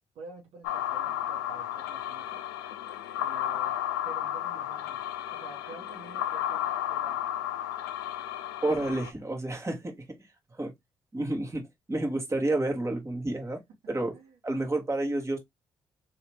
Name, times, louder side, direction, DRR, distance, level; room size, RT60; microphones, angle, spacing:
voice 1, 0.1-2.4 3.1-3.7 4.0-5.0 5.3-7.2 14.1-14.4, right 3 dB, 70° right, 1.3 m, -48 dB
sound 1, 0.6-9.1, left 11 dB, 90° left, 0.4 m, -33 dB
voice 2, 8.6-10.0 10.5-10.7 11.1-13.6 13.9-14.1 14.4-15.4, right 2 dB, 25° right, 1.6 m, -30 dB
3.2 x 2.8 x 3.1 m
hypercardioid pair, 45°, 11 cm